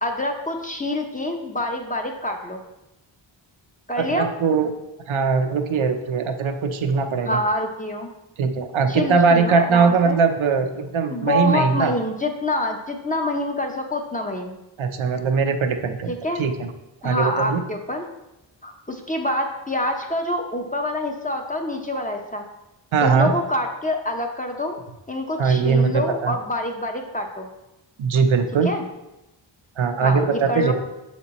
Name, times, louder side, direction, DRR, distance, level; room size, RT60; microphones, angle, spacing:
voice 1, 0.0-2.6 3.9-4.3 7.2-8.1 8.9-10.2 11.1-14.6 16.1-16.4 17.0-18.1 18.6-22.4 23.0-24.8 25.1-27.5 28.6-28.8 30.0-30.7, left 1 dB, 15° left, 3 dB, 0.7 m, -26 dB
voice 2, 4.0-4.8 5.1-7.4 8.4-11.9 14.8-16.1 16.4-16.7 17.0-17.6 22.9-23.3 25.4-26.4 28.0-28.7 29.8-30.7, right 5 dB, 80° right, 6 dB, 0.7 m, -20 dB
6.7 x 4.3 x 4.2 m, 0.96 s
wide cardioid pair, 110°, 47 cm